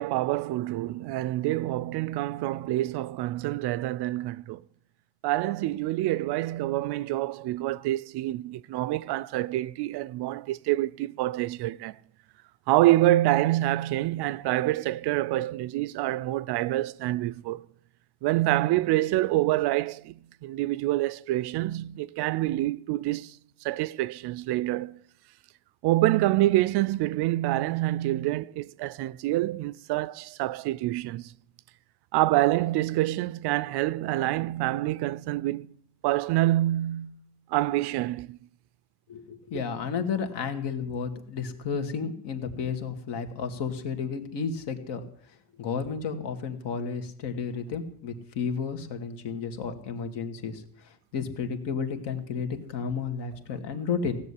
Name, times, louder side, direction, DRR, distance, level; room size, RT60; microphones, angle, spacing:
voice 1, 0.0-4.6 5.2-12.0 12.7-17.7 18.2-23.4 23.6-25.0 25.8-31.3 32.1-35.7 36.0-37.2 37.5-38.4, right 16 dB, 60° right, 0.5 m, -26 dB
voice 2, 39.1-45.0 45.6-54.2, left 6 dB, 60° left, 2.1 m, -32 dB
16.5 x 7.4 x 9.8 m
cardioid pair, 140°, 46 cm